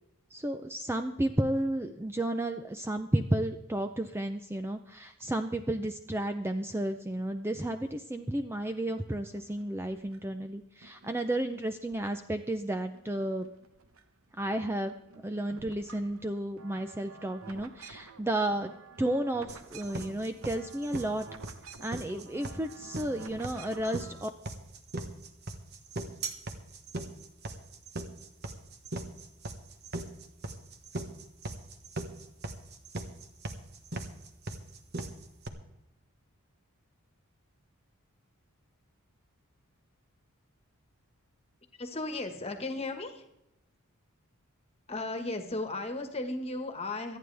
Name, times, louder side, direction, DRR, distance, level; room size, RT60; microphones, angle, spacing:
voice 1, 0.3-13.5 14.4-14.9 15.2-18.7 19.0-21.3 21.8-24.3, right 1 dB, 10° right, 7 dB, 0.5 m, -32 dB
sound 1, 8.9-10.4 10.8-12.4 12.7-14.0 14.3-24.2, right 4 dB, 70° right, 1.0 m, -51 dB
sound 2, 19.5-35.5, right 2 dB, 50° right, 1.3 m, -39 dB
voice 2, 41.8-43.2 44.9-47.2, left 2 dB, 30° left, 6 dB, 1.5 m, -35 dB
26.0 x 9.4 x 3.4 m, 0.87 s
head